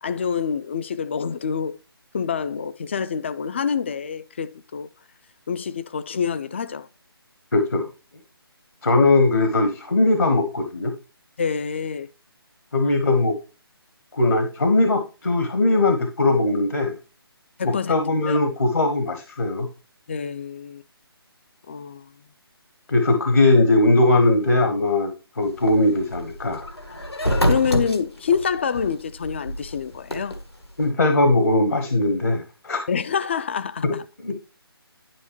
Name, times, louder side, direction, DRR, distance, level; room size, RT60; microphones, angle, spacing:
voice 1, 0.0-1.7 2.1-4.9 5.5-6.9 11.4-12.1 12.8-12.9 17.6-17.9 18.3-18.4 20.1-20.8 21.7-22.1 27.2-30.4 32.9-34.0, left 6 dB, 30° left, 0.4 m, -27 dB
voice 2, 7.5-7.9 8.8-10.9 12.7-13.4 14.1-17.0 17.6-19.7 22.9-26.6 30.8-32.8 33.8-33.9 34.2-34.4, left 2 dB, 65° left, 1.4 m, -20 dB
sound 1, 25.4-30.9, equal, 85° left, 1.8 m, -26 dB
11.0 x 4.9 x 3.1 m
figure-of-eight pair, 145°, 13 cm